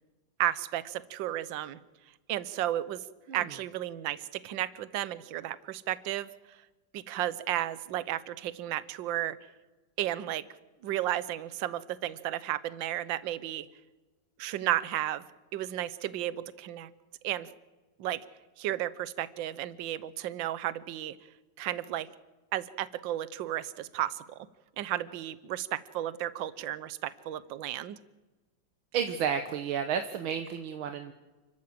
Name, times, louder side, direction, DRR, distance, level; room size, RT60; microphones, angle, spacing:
voice 1, 0.4-1.8 2.3-3.0 3.3-6.3 6.9-9.4 10.0-10.4 10.8-13.7 14.4-15.2 15.5-16.9 17.2-17.5 18.0-18.2 18.6-21.2 21.6-22.1 22.5-24.2 24.8-28.0, right 13 dB, 70° right, 16 dB, 1.5 m, -33 dB
voice 2, 28.9-31.1, right 7 dB, 90° right, 7 dB, 1.9 m, -31 dB
29.5 x 13.5 x 7.8 m, 1.2 s
omnidirectional pair, 2.2 m